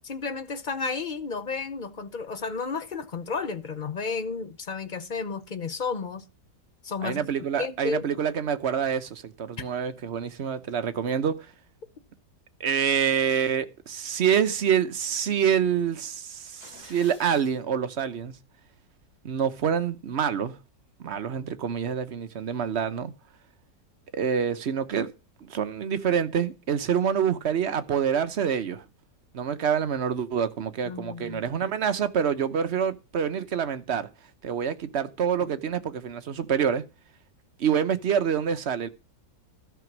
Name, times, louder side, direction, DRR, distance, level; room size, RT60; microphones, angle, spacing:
voice 1, 0.0-6.2 6.8-7.2 7.6-8.0 30.9-31.5, left 4 dB, 45° left, 0.6 m, -32 dB
voice 2, 7.0-11.4 12.6-18.4 19.2-20.6 21.0-23.1 24.1-25.1 25.4-28.8 29.3-34.1 34.4-36.8 37.6-38.9, right 8 dB, 50° right, 0.9 m, -26 dB
sound 1, 16.3-17.6, left 3 dB, 65° left, 3.5 m, -50 dB
12.5 x 6.0 x 6.0 m
omnidirectional pair, 1.8 m